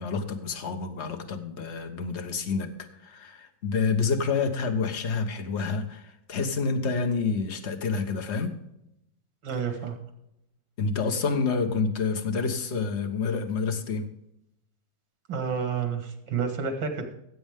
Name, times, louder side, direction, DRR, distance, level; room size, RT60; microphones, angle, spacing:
voice 1, 0.0-8.5 10.8-14.0, left 4 dB, 40° left, 6 dB, 1.3 m, -28 dB
voice 2, 9.4-10.0 15.3-17.1, right 6 dB, 80° right, 6 dB, 2.6 m, -30 dB
15.5 x 7.9 x 3.6 m, 0.82 s
omnidirectional pair, 2.0 m